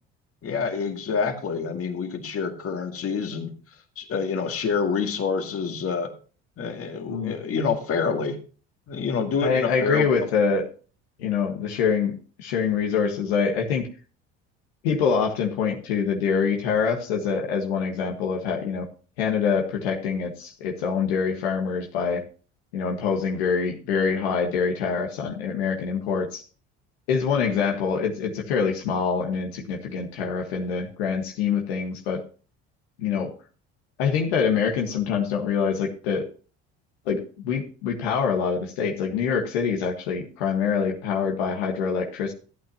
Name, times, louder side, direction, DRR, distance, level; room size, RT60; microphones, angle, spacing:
voice 1, 0.4-3.5 4.0-6.1 6.6-8.4 8.9-10.1, left 5 dB, 45° left, 5 dB, 2.0 m, -27 dB
voice 2, 9.4-10.6 11.2-12.1 12.4-13.9 14.8-18.8 19.2-22.2 22.7-26.4 27.1-32.2 33.0-33.3 34.0-36.3 37.0-37.2 37.4-42.3, left 6 dB, 90° left, 1 dB, 1.6 m, -25 dB
14.0 x 8.8 x 2.9 m, 0.38 s
hypercardioid pair, 70°, 31 cm